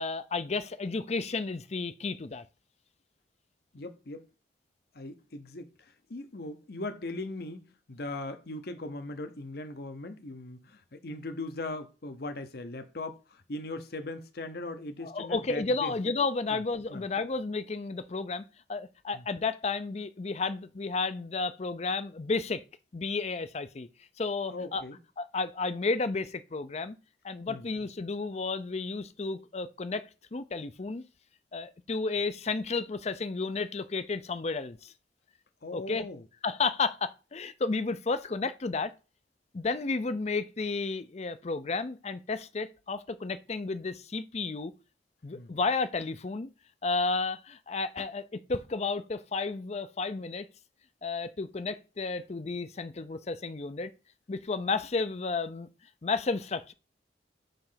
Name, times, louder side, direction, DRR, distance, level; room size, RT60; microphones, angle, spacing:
voice 1, 0.0-2.4 15.0-18.4 18.7-22.6 22.9-23.9 24.2-24.8 25.2-27.0 27.2-31.0 31.5-34.9 35.7-36.1 36.4-38.9 39.5-44.7 45.2-46.5 46.8-50.5 51.0-53.9 54.3-55.7 56.0-56.7, left 4 dB, 35° left, 0.5 m, -32 dB
voice 2, 3.7-4.3 4.9-5.7 6.1-16.0 16.5-16.6 16.9-17.0 19.1-19.2 24.5-25.0 27.5-27.6 35.6-36.2 45.3-45.5, left 2 dB, 60° left, 0.9 m, -39 dB
6.8 x 3.2 x 5.7 m
head